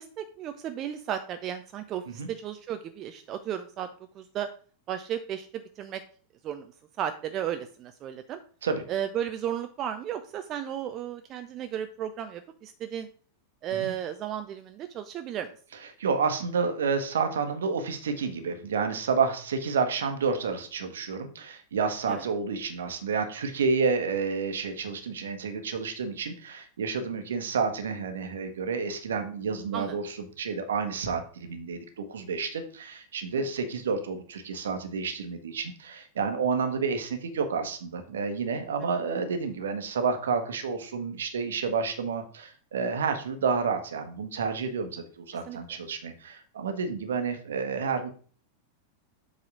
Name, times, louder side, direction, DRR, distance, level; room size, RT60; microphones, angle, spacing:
voice 1, 0.0-3.9 4.1-4.5 4.9-6.0 6.4-6.7 7.0-8.4 8.9-13.1 13.6-15.6 22.1-22.2 29.7-30.0 33.3-33.5 45.5-45.8, right 10 dB, 35° right, 8 dB, 0.6 m, -34 dB
voice 2, 16.0-48.1, right 5 dB, 65° right, 7 dB, 1.3 m, -30 dB
7.6 x 4.1 x 4.9 m, 0.42 s
figure-of-eight pair, 90°, 0 cm